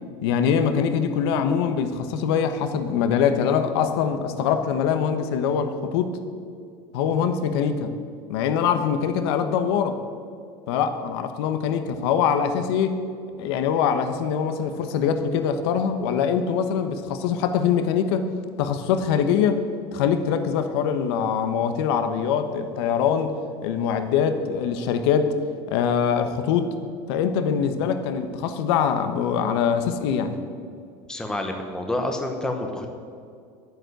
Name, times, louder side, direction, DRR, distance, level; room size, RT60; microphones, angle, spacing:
voice 1, 0.2-6.2 6.9-7.9 8.3-10.0 10.7-13.0 13.4-18.3 18.6-19.6 19.9-23.3 23.6-25.3 25.7-26.7 27.1-30.4, left 7 dB, 80° left, 9 dB, 1.2 m, -23 dB
voice 2, 31.1-32.9, left 1 dB, 5° left, 3 dB, 1.0 m, -28 dB
12.0 x 9.7 x 8.1 m, 2.3 s
cardioid pair, 165°, 13 cm